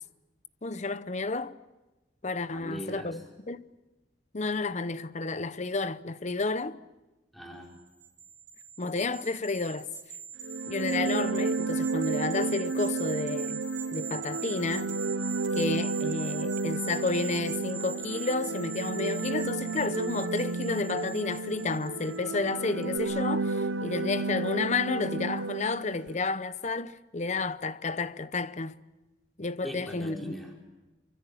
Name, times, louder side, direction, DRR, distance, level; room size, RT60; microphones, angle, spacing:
voice 1, 0.6-1.5 2.2-3.2 3.5-3.6 4.3-6.8 8.8-9.9 10.7-13.6 13.9-14.9 15.5-28.7 29.4-30.3, left 3 dB, 40° left, 0.8 m, -31 dB
voice 2, 2.5-3.2 7.3-7.7 29.6-30.7, equal, ahead, 4.8 m, -40 dB
sound 1, 7.9-22.5 22.8-23.0, right 6 dB, 75° right, 2.8 m, -42 dB
sound 2, 10.4-26.1, right 3 dB, 90° right, 0.8 m, -32 dB
24.5 x 24.5 x 8.4 m
head